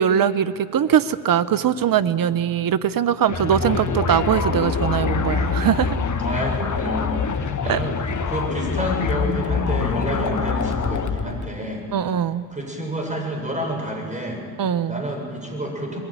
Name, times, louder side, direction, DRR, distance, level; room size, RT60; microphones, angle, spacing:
voice 1, 0.0-6.0 7.7-7.8 11.9-12.5 14.6-15.0, right 9 dB, 50° right, 15 dB, 1.0 m, -21 dB
sound 1, 3.3-11.5, left 5 dB, 45° left, 1.5 m, -24 dB
voice 2, 6.2-7.9 8.2-11.9 12.5-14.4 14.9-16.0, equal, 15° right, 1 dB, 7.2 m, -29 dB
21.5 x 14.5 x 9.2 m, 2.1 s
supercardioid pair, 55°, 43 cm